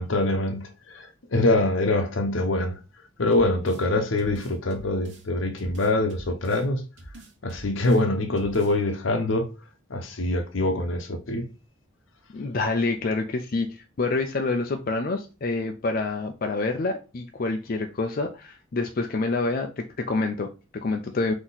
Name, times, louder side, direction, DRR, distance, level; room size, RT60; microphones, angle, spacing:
voice 1, 0.0-2.8 3.2-6.9 7.4-9.5 9.9-11.5, left 2 dB, 70° left, 0.8 m, -24 dB
sound 1, 3.3-3.9 4.2-5.3 5.6-6.6 7.0-8.0 8.4-8.7, right 1 dB, 65° right, 1.2 m, -45 dB
voice 2, 12.3-21.3, left 3 dB, 45° left, 0.5 m, -27 dB
4.0 x 3.0 x 3.9 m
head